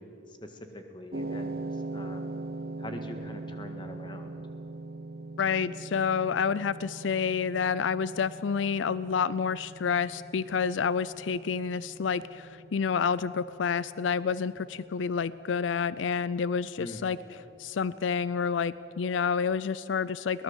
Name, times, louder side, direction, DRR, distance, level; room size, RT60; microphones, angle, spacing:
voice 1, 0.0-2.4 2.8-4.3 16.8-17.1, left 1 dB, 25° left, 5 dB, 1.8 m, -43 dB
sound 1, 1.1-19.4, right 2 dB, 50° right, 0.8 m, -42 dB
voice 2, 5.4-17.2 17.6-20.4, left 6 dB, 90° left, 17 dB, 0.4 m, -29 dB
23.0 x 18.5 x 7.3 m, 2.8 s
head